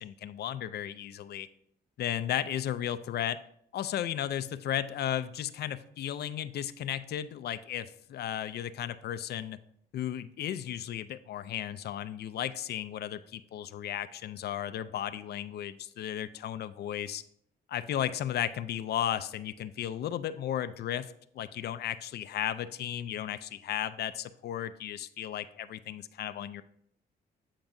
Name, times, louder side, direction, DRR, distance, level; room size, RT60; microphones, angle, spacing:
voice 1, 0.0-1.5 2.0-3.4 3.7-9.6 9.9-17.2 17.7-26.6, left 11 dB, 65° left, 13 dB, 0.4 m, -34 dB
8.8 x 4.6 x 2.6 m, 0.68 s
cardioid pair, 75°, 18 cm